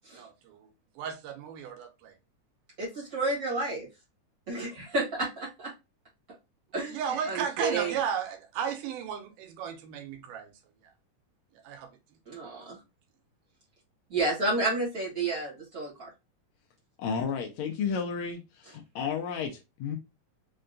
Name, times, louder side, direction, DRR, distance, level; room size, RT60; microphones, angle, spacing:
voice 1, 0.1-2.2 6.9-10.5 10.8-10.9 11.5-11.9 12.7-12.8, right 7 dB, 85° right, 2.3 m, -35 dB
voice 2, 2.8-3.9 4.5-5.7 6.7-7.0 7.3-7.9 12.3-12.8 14.1-16.1, right 2 dB, 55° right, 1.0 m, -30 dB
voice 3, 17.0-18.4 18.7-20.0, left 6 dB, 85° left, 1.6 m, -32 dB
5.4 x 2.2 x 2.5 m
omnidirectional pair, 3.8 m